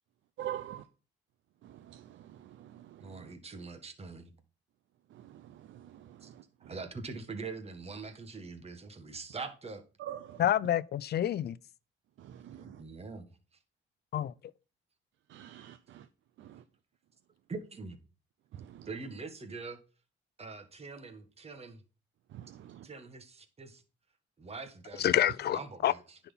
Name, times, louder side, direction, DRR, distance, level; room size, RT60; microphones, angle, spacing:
voice 1, 0.4-0.8 1.6-3.3 5.1-6.7 10.0-10.4 12.2-12.8 15.3-16.0 16.4-16.6 18.5-18.9 22.3-22.9, right 11 dB, 70° right, 0.6 m, -45 dB
voice 2, 3.0-4.3 6.2-6.3 6.7-9.8 12.5-13.2 17.5-18.0 18.8-19.8 20.4-21.8 22.8-23.8 24.4-26.2, right 4 dB, 30° right, 1.6 m, -43 dB
voice 3, 10.4-11.6 14.1-14.3 25.0-25.9, left 11 dB, 55° left, 0.5 m, -28 dB
9.8 x 4.3 x 5.5 m
cardioid pair, 90°, 20 cm